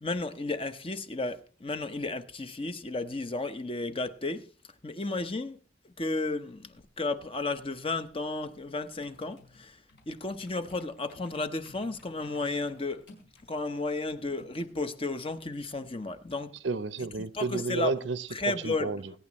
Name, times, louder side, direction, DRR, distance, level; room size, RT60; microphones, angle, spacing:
voice 1, 0.0-4.5 4.8-5.6 6.0-6.7 7.0-9.8 10.1-13.0 13.5-16.5 17.3-18.0 18.3-18.9, left 2 dB, 30° left, 0.9 m, -33 dB
sound 1, 6.7-14.7, left 2 dB, 65° left, 5.0 m, -59 dB
voice 2, 16.6-19.1, right 3 dB, 85° right, 0.8 m, -32 dB
21.0 x 9.6 x 3.1 m
head